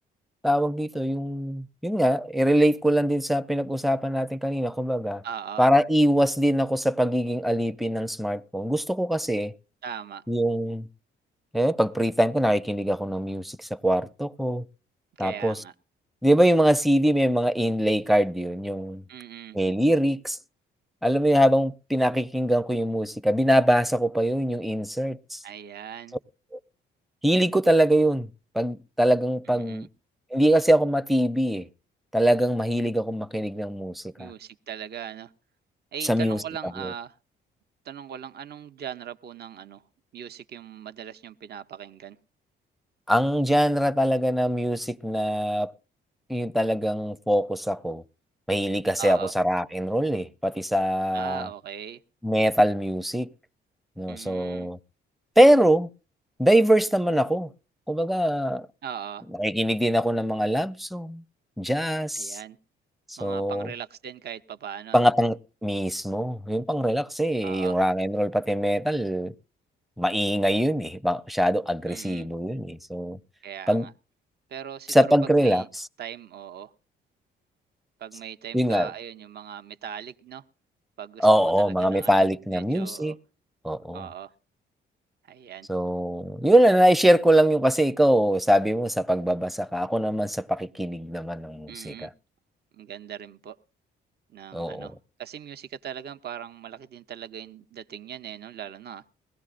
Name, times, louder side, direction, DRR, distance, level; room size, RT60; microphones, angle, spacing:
voice 1, 0.4-5.2 5.6-9.5 10.3-10.9 11.5-14.6 15.2-15.6 16.2-19.0 19.5-20.4 21.0-25.4 27.2-28.3 28.5-29.9 30.3-31.7 32.1-34.3 36.0-36.4 36.8-36.9 43.1-45.7 46.3-48.0 48.5-51.5 52.2-53.3 54.0-54.8 55.4-55.9 56.4-57.5 57.9-58.7 59.4-61.2 61.6-62.4 63.1-63.7 64.9-69.3 70.0-73.2 73.7-73.9 74.9-75.6 78.5-78.9 81.2-83.1 83.6-84.1 85.7-92.1 94.5-94.9, equal, ahead, 0.6 m, -23 dB
voice 2, 5.2-5.7 9.8-10.2 15.2-15.7 19.1-19.6 25.4-26.2 29.5-29.9 34.2-35.3 35.9-37.2 37.8-39.8 40.1-42.2 49.0-49.3 51.1-52.0 54.1-54.7 58.8-59.2 62.1-62.6 63.2-65.1 67.4-67.8 71.9-72.3 73.4-73.9 74.5-75.1 75.3-75.7 76.0-76.7 78.0-80.4 81.0-83.1 83.9-84.3 85.3-85.7 91.7-92.1 92.7-93.6 94.3-99.1, right 9 dB, 55° right, 0.8 m, -39 dB
21.0 x 16.5 x 2.5 m
cardioid pair, 90°, 20 cm